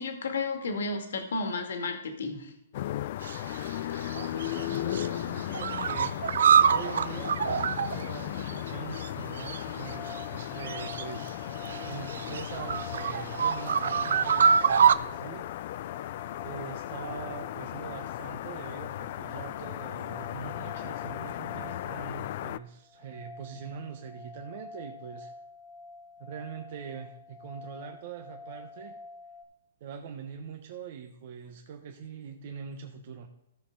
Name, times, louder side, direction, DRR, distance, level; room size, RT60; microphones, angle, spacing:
voice 1, 0.0-2.5, left 3 dB, 75° left, 5 dB, 1.9 m, -32 dB
sound 1, 2.7-22.6, left 13 dB, 45° left, 0.3 m, -36 dB
sound 2, 3.2-3.7 4.0-5.1 5.4-8.7 9.0-9.1 9.4-11.3 11.6-14.9, right 7 dB, 75° right, 0.5 m, -26 dB
voice 2, 4.1-6.4 6.7-15.5 16.4-25.3 26.2-29.0 29.8-33.3, right 7 dB, 50° right, 4 dB, 1.0 m, -43 dB
sound 3, 9.8-29.4, left 3 dB, ahead, 2.0 m, -48 dB
15.0 x 6.4 x 3.9 m, 0.80 s
hypercardioid pair, 155°, 0 cm